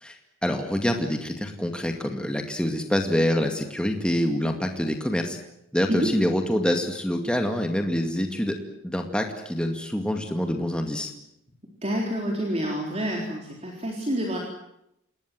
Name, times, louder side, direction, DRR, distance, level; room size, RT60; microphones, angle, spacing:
voice 1, 0.0-5.4 5.7-8.6 8.8-11.1, equal, 5° left, 4 dB, 2.2 m, -26 dB
voice 2, 11.8-14.4, equal, 30° right, 0 dB, 4.1 m, -28 dB
28.0 x 20.5 x 7.8 m, 0.80 s
head